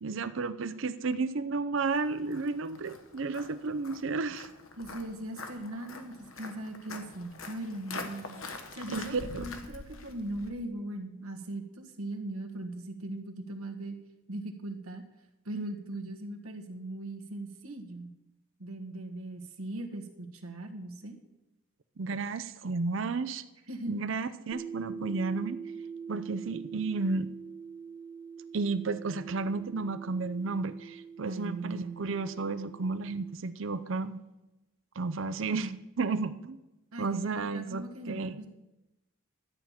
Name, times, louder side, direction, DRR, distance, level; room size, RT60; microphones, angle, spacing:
voice 1, 0.0-4.5 8.9-9.5 22.0-23.4 23.9-25.6 26.1-27.3 28.5-34.2 35.0-36.6 37.0-38.4, right 4 dB, 60° right, 12 dB, 0.5 m, -32 dB
Walk footsteps, 1.9-10.5, left 3 dB, 75° left, 1.3 m, -45 dB
voice 2, 4.8-14.0 14.3-15.0 15.4-18.1 18.6-21.2 23.7-24.0 31.2-32.0 36.9-38.5, right 1 dB, 90° right, 3 dB, 1.5 m, -39 dB
sound 1, 24.5-33.3, right 6 dB, 5° left, 1.0 m, -44 dB
12.0 x 8.7 x 5.8 m, 0.98 s
head